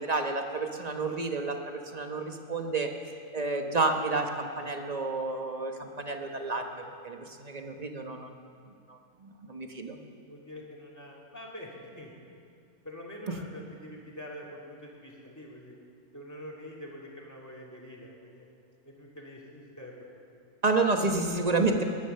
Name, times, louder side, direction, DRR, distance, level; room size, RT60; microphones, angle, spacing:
voice 1, 0.0-2.9 3.3-8.4 8.9-10.0 20.6-21.8, right 3 dB, 30° right, 4 dB, 1.1 m, -30 dB
voice 2, 10.3-12.4 12.8-15.7 16.1-18.5 18.8-20.2, left 1 dB, 10° left, -2 dB, 2.5 m, -45 dB
18.0 x 10.5 x 6.8 m, 2.3 s
omnidirectional pair, 1.5 m